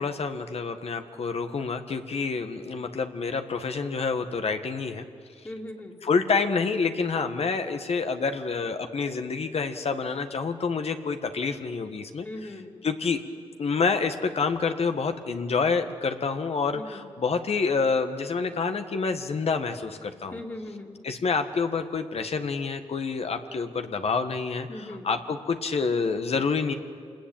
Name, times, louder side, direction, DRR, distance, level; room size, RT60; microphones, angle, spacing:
voice 1, 0.0-5.0 6.0-13.2 13.6-20.4 21.0-26.7, left 4 dB, 65° left, 7 dB, 1.5 m, -28 dB
voice 2, 5.4-6.0 12.2-12.7 16.7-17.0 20.3-20.9 24.7-25.1, left 1 dB, 20° left, -2 dB, 2.6 m, -39 dB
26.5 x 19.5 x 8.9 m, 2.2 s
cardioid pair, 80°, 11 cm